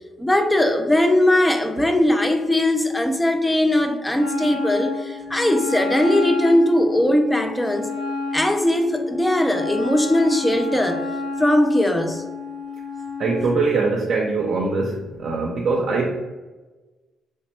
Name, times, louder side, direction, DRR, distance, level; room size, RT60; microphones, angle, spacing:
voice 1, 0.2-7.9 8.3-11.1 11.4-12.2, left 1 dB, 10° left, 6 dB, 0.4 m, -19 dB
Wind instrument woodwind instrument, 4.1-13.7, left 3 dB, 60° left, 1.2 m, -30 dB
voice 2, 13.2-16.1, right 3 dB, 60° right, -1 dB, 0.5 m, -22 dB
3.2 x 2.1 x 4.2 m, 1.2 s
cardioid pair, 90°, 0 cm